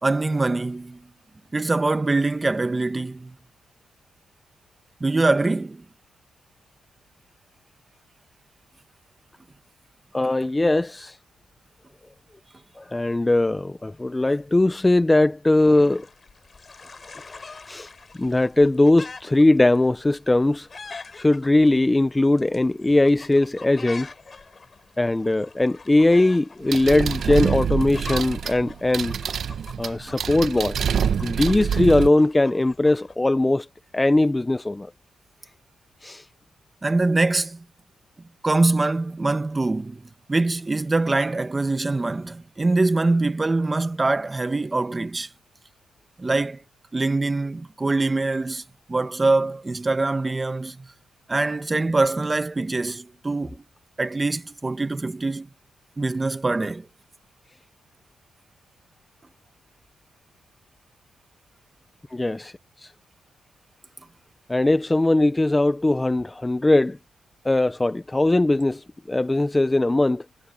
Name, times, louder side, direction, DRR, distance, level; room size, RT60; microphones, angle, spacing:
voice 1, 0.0-1.0 1.5-3.3 5.0-5.8 36.8-37.6 38.4-45.3 46.2-46.6 46.9-48.6 48.9-50.9 51.3-53.6 54.0-55.5 56.0-56.9, right 2 dB, 15° right, 1.2 m, -23 dB
voice 2, 10.1-11.2 12.8-16.1 17.3-17.4 17.7-17.9 18.2-20.7 21.1-24.1 25.0-29.2 29.8-30.8 31.2-33.7 33.9-34.9 36.0-36.3 62.1-62.9 64.5-67.0 67.4-70.3, left 2 dB, 10° left, 0.4 m, -20 dB
sound 1, 15.6-33.1, left 4 dB, 30° left, 3.6 m, -44 dB
sound 2, 26.7-32.1, right 7 dB, 50° right, 0.7 m, -26 dB
cardioid pair, 145°, 0 cm